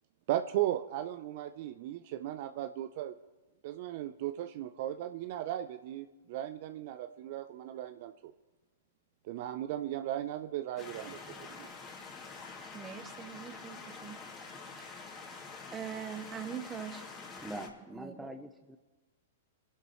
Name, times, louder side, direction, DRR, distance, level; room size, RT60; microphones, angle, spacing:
voice 1, 0.3-3.1 3.6-8.3 9.3-11.7, right 12 dB, 55° right, 9 dB, 0.5 m, -36 dB
sound 1, 10.8-17.7, left 4 dB, 25° left, 2.5 m, -47 dB
voice 2, 12.7-14.2 14.8-15.4 15.7-17.0 17.5-17.6 18.0-18.2, right 8 dB, 20° right, 6 dB, 1.6 m, -43 dB
voice 3, 17.4-18.8, right 1 dB, 5° right, 5 dB, 0.7 m, -44 dB
27.5 x 11.0 x 3.1 m, 1.2 s
hypercardioid pair, 110°, 0 cm